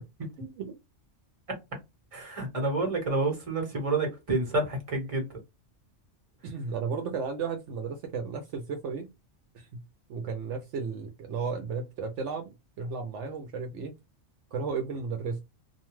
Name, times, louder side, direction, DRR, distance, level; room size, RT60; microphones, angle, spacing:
voice 1, 0.4-0.7 6.4-9.1 9.5-9.8 10.1-12.5 12.8-13.9 14.5-15.4, right 5 dB, 75° right, 0.9 m, -34 dB
voice 2, 2.1-5.3, right 2 dB, 30° right, 1.1 m, -29 dB
2.5 x 2.2 x 2.9 m
omnidirectional pair, 1.3 m